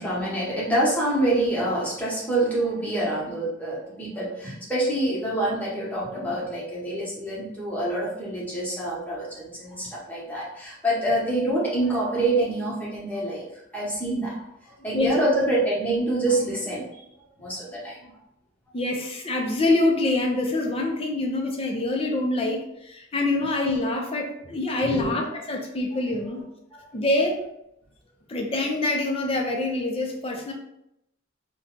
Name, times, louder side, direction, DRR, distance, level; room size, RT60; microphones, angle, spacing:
voice 1, 0.0-13.5 13.7-14.3 14.7-17.0 17.4-18.1 24.8-25.1 26.7-26.8, right 1 dB, 10° left, -7 dB, 1.0 m, -26 dB
voice 2, 18.7-26.4 26.9-27.4 28.3-30.5, left 2 dB, 30° left, 1 dB, 0.5 m, -25 dB
2.7 x 2.3 x 3.7 m, 0.79 s
head